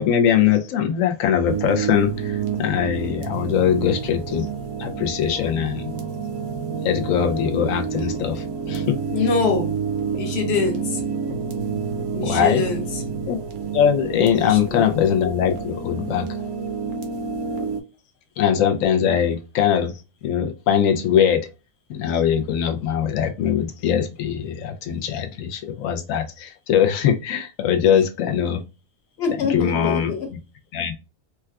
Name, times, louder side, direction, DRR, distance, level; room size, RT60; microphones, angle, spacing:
voice 1, 0.0-4.5 4.8-5.9 6.8-9.0 12.2-12.6 13.3-13.4 13.7-16.4 18.4-19.9 20.2-21.5 21.9-28.6 29.5-30.1 30.7-30.9, left 8 dB, 70° left, 0.9 m, -21 dB
sound 1, 1.5-17.8, right 6 dB, 70° right, 1.1 m, -29 dB
voice 2, 9.1-9.7 10.0-11.0 12.1-12.8 14.4-14.8 29.2-30.3, left 5 dB, 50° left, 1.1 m, -24 dB
4.5 x 2.2 x 2.2 m
omnidirectional pair, 1.5 m